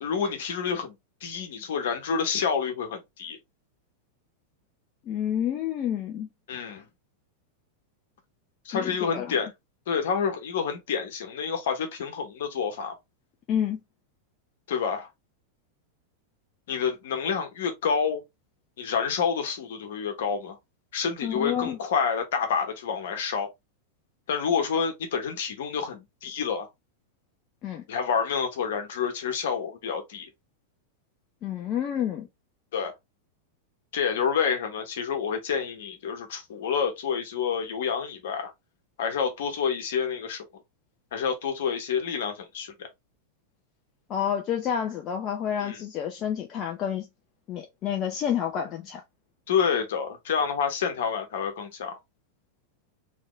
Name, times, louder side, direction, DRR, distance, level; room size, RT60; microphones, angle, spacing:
voice 1, 0.0-0.9 1.2-3.4 6.5-6.9 8.6-9.5 9.9-12.9 14.7-15.1 16.7-18.2 18.8-20.6 20.9-23.5 24.3-26.7 27.9-30.3 32.7-32.9 33.9-38.5 39.0-40.5 41.1-42.9 45.6-45.8 49.5-52.0, left 6 dB, 55° left, 1.5 m, -28 dB
voice 2, 5.1-6.3 8.7-9.3 13.5-13.8 21.2-21.8 27.6-27.8 31.4-32.3 44.1-47.1 47.5-49.0, left 9 dB, 35° left, 0.9 m, -29 dB
4.2 x 3.7 x 3.2 m
figure-of-eight pair, 90°, 0 cm